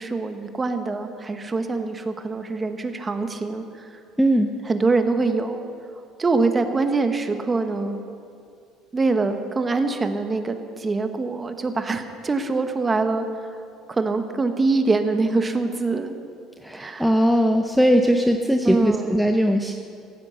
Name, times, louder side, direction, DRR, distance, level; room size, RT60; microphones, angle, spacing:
voice 1, 0.0-3.9 4.7-5.6 6.2-8.0 8.9-13.3 13.9-16.1 16.7-17.1 18.6-19.2, right 3 dB, 20° right, 7 dB, 1.1 m, -24 dB
voice 2, 4.2-4.5 16.6-19.7, equal, ahead, 3 dB, 0.6 m, -19 dB
15.0 x 9.8 x 7.9 m, 2.4 s
cardioid pair, 140°, 0 cm